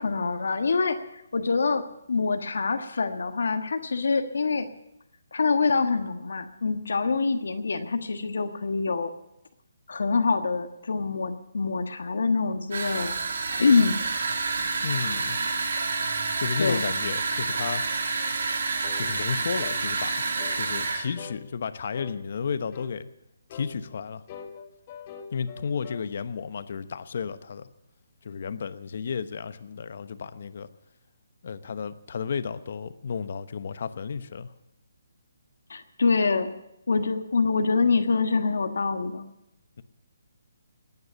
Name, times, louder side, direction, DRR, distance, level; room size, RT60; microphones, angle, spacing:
voice 1, 0.0-1.8 2.1-4.7 5.3-9.1 9.9-13.2 13.6-14.0 16.6-16.8 35.7-36.5 36.9-39.2, left 4 dB, 75° left, 7 dB, 1.3 m, -25 dB
sound 1, 12.7-21.1, right 4 dB, 65° right, 2.2 m, -28 dB
voice 2, 14.8-15.4 16.4-17.8 19.0-20.3 20.5-23.1 23.5-24.2 25.3-27.7 28.2-30.7 31.4-34.5, left 6 dB, 55° left, 12 dB, 0.9 m, -33 dB
sound 2, 18.8-19.1 19.6-19.9 20.4-20.6 21.2-21.4 21.9-22.2 22.7-23.0 23.5-23.7 24.3-26.1, left 7 dB, 30° left, 1.4 m, -42 dB
19.5 x 9.5 x 6.8 m, 0.83 s
hypercardioid pair, 160°, 0 cm